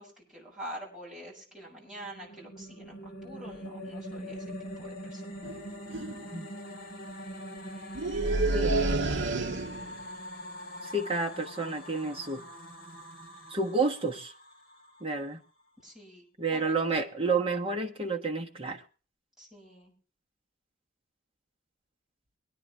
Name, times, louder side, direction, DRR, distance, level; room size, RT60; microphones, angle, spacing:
voice 1, 0.0-4.5 4.8-5.2 15.8-16.3 16.5-17.0 19.4-19.9, right 1 dB, 5° right, -6 dB, 7.4 m, -46 dB
sound 1, 1.7-15.0, equal, 50° left, 3.7 m, -43 dB
sound 2, 5.4-5.6 5.9-6.2 7.9-10.0, right 2 dB, 65° right, 0.9 m, -29 dB
voice 2, 8.5-8.9 10.8-12.4 13.5-14.3 15.0-15.4 16.4-18.8, right 3 dB, 30° right, 2 dB, 1.2 m, -30 dB
23.5 x 9.9 x 3.3 m, 0.37 s
head